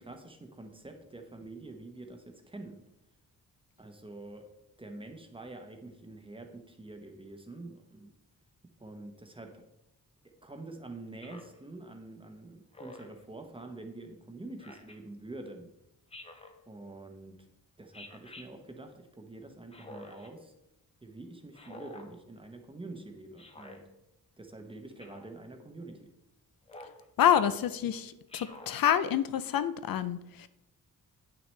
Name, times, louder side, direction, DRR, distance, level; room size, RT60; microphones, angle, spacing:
voice 1, 0.0-2.8 3.8-4.4 4.8-8.1 8.8-9.6 10.4-15.7 16.7-17.3 17.8-20.5 21.0-23.8 24.4-26.1, right 2 dB, 15° right, 4 dB, 0.7 m, -46 dB
Speech synthesizer, 11.2-11.6 12.7-13.2 14.6-15.0 16.1-16.6 17.9-18.5 19.7-20.3 21.5-22.1 23.4-23.8 25.0-25.3 26.7-27.0 28.3-28.8, left 2 dB, 15° left, 0.7 m, -48 dB
voice 2, 27.2-30.5, left 10 dB, 70° left, 13 dB, 0.5 m, -27 dB
9.4 x 6.1 x 3.2 m, 0.90 s
wide cardioid pair, 175°, 35 cm